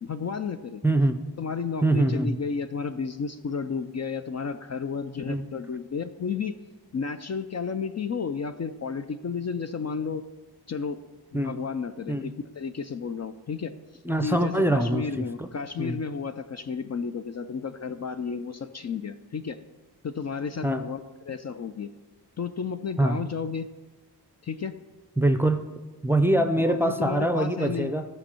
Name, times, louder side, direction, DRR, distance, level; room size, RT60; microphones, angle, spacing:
voice 1, 0.0-0.8 1.4-6.6 6.9-10.2 10.7-11.0 11.3-13.7 14.2-19.6 20.0-21.0 21.3-21.9 22.4-23.7 24.4-24.8 26.6-27.9, left 5 dB, 45° left, 9 dB, 0.4 m, -32 dB
voice 2, 0.8-1.2 1.8-2.4 5.3-5.4 11.3-11.6 12.1-12.3 14.0-15.5 15.8-16.0 20.6-20.9 23.0-23.2 25.2-25.6 26.0-28.1, right 1 dB, 5° right, 8 dB, 0.5 m, -24 dB
15.5 x 5.4 x 4.3 m, 1.2 s
wide cardioid pair, 85°, 40 cm